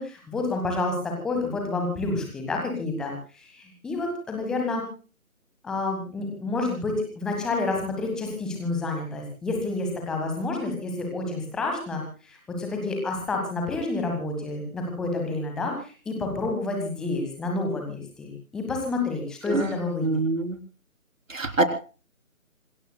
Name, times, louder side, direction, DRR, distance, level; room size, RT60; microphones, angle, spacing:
voice 1, 0.0-4.8 5.6-20.1, left 3 dB, ahead, 2 dB, 1.3 m, -29 dB
voice 2, 20.0-20.6 21.3-21.7, right 2 dB, 60° right, 7 dB, 3.7 m, -24 dB
26.5 x 20.5 x 2.2 m, 0.37 s
figure-of-eight pair, 150°, 43 cm